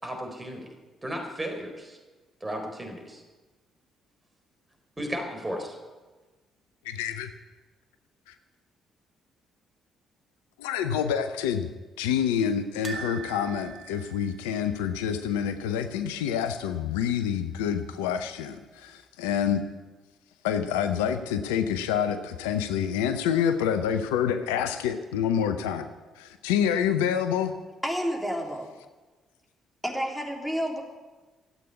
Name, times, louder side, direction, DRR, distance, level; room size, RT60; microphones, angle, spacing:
voice 1, 0.0-0.7 1.0-2.0 2.4-3.2 5.0-5.8, equal, 15° right, 3 dB, 4.2 m, -34 dB
voice 2, 6.8-7.3 8.3-8.4 10.6-11.7 12.0-19.7 20.4-25.9 26.2-27.5, left 8 dB, 75° left, 9 dB, 0.7 m, -27 dB
sound 1, 12.8-15.9 16.2-16.4 16.6-16.7 18.0-18.5 19.0-19.1, right 6 dB, 40° right, 1.8 m, -42 dB
voice 3, 27.8-28.7 29.8-30.8, equal, ahead, 0 dB, 3.6 m, -30 dB
13.0 x 8.5 x 9.7 m, 1.3 s
figure-of-eight pair, 45°, 0 cm